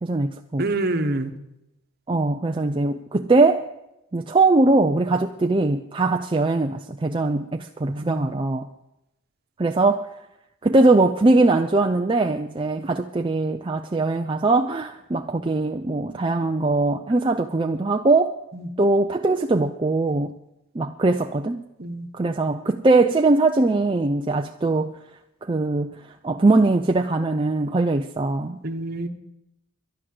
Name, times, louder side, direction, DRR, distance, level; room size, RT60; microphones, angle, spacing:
voice 1, 0.0-0.7 2.1-3.6 4.1-8.7 9.6-10.1 10.6-18.3 18.8-20.3 20.8-21.6 22.1-24.9 25.4-25.9 26.2-28.6, right 2 dB, 25° right, 0.4 m, -21 dB
voice 2, 0.6-1.3 7.9-8.4 18.5-18.7 21.8-22.1 28.6-29.1, right 2 dB, 45° right, 1.1 m, -27 dB
11.5 x 11.0 x 7.7 m
head